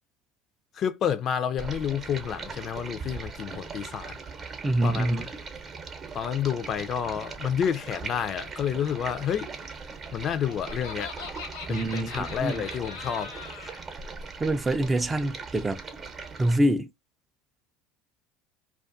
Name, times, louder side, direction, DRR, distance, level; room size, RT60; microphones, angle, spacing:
voice 1, 0.7-4.2 4.8-5.3 6.1-9.5 10.1-11.1 11.7-13.3, left 8 dB, 45° left, 0.4 m, -29 dB
Stream, 1.6-16.6, right 4 dB, 35° right, 0.8 m, -40 dB
voice 2, 4.6-5.2 11.7-12.6 14.4-15.8 16.4-16.9, right 1 dB, 20° right, 0.4 m, -25 dB
Laughter, 10.0-13.8, left 5 dB, 80° left, 0.7 m, -41 dB
2.3 x 2.3 x 2.5 m
hypercardioid pair, 80°, 0 cm